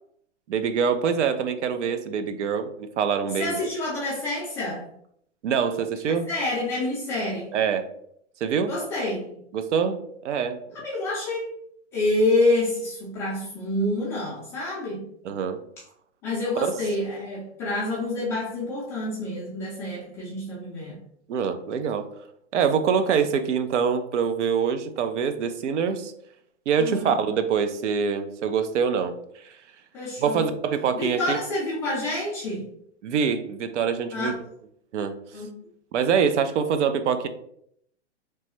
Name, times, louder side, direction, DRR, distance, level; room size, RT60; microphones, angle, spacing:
voice 1, 0.5-3.7 5.4-6.3 7.5-7.9 8.4-8.7 9.5-10.6 15.2-15.6 16.6-16.8 21.3-22.1 22.5-26.1 26.7-29.1 29.4-29.5 30.2-31.4 33.0-34.3 34.9-35.2 35.9-37.3, right 6 dB, 85° right, 9 dB, 0.5 m, -25 dB
voice 2, 3.4-4.9 6.0-7.6 8.7-9.3 10.7-11.5 11.9-15.1 16.2-21.0 26.8-27.2 29.9-30.5 30.9-32.7 34.1-34.4 35.3-35.5, left 2 dB, 10° left, -7 dB, 0.3 m, -28 dB
3.1 x 2.2 x 2.9 m, 0.70 s
hypercardioid pair, 140°, 35 cm